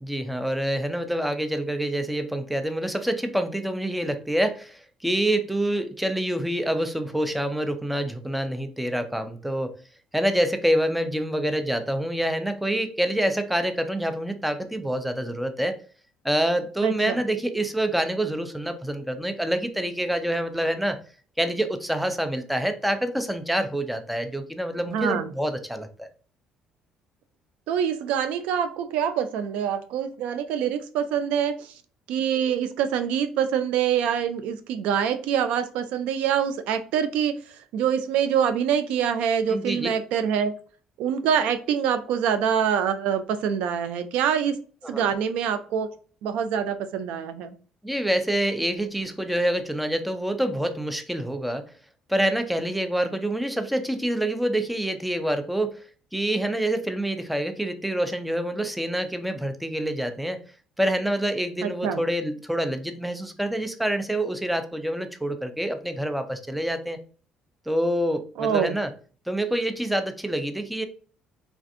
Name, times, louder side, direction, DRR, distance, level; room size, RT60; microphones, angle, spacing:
voice 1, 0.0-9.7 10.1-15.8 16.2-21.0 21.4-26.1 39.5-39.9 44.8-45.1 47.8-51.7 52.1-55.8 56.1-60.4 60.8-67.0 67.7-68.9 69.3-70.9, right 1 dB, ahead, 8 dB, 0.4 m, -26 dB
voice 2, 16.8-17.2 24.9-25.3 27.7-31.7 32.1-40.5 41.0-44.6 44.9-45.9 46.2-47.5 61.6-62.0 68.4-68.8, right 8 dB, 80° right, 10 dB, 0.3 m, -25 dB
3.3 x 2.4 x 2.5 m, 0.40 s
cardioid pair, 120°, 2 cm